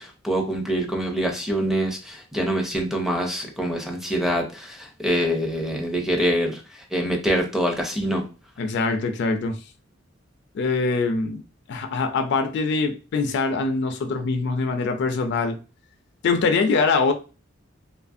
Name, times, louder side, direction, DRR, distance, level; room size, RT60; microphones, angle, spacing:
voice 1, 0.0-6.6 6.9-8.2, equal, ahead, 0.4 m, -25 dB
voice 2, 8.6-9.6 10.5-11.4 11.7-15.6 16.2-17.1, left 4 dB, 60° left, 0.4 m, -23 dB
2.7 x 2.5 x 2.5 m
head